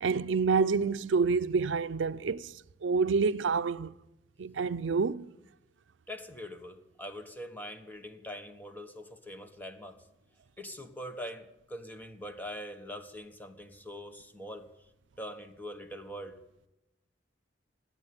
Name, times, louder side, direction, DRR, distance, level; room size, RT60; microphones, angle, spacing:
voice 1, 0.0-2.5 2.8-3.9 4.4-5.3, right 5 dB, 80° right, 0.5 m, -28 dB
voice 2, 6.1-10.0 10.6-14.7 15.2-16.4, equal, 10° left, 1.3 m, -43 dB
19.5 x 8.2 x 8.6 m
head